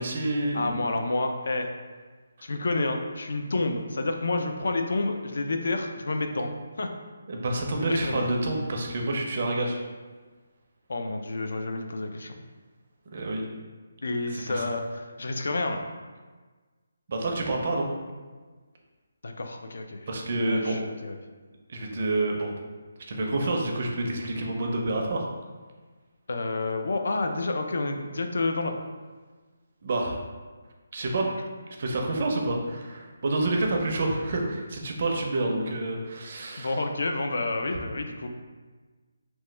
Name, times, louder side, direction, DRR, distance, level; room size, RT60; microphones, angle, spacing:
voice 1, 0.0-0.8 7.3-9.8 13.1-13.4 14.3-14.6 17.1-17.9 20.1-20.8 21.7-22.5 23.1-25.3 29.8-30.2 30.9-31.4 31.7-36.8, right 2 dB, 40° right, 1 dB, 0.4 m, -28 dB
voice 2, 0.5-1.7 2.4-6.5 6.8-6.9 7.7-8.2 10.9-12.4 14.0-15.8 19.2-20.0 20.4-21.2 26.3-28.8 36.6-38.3, left 2 dB, 65° left, 5 dB, 0.3 m, -29 dB
2.9 x 2.2 x 3.2 m, 1.4 s
hypercardioid pair, 175°, 0 cm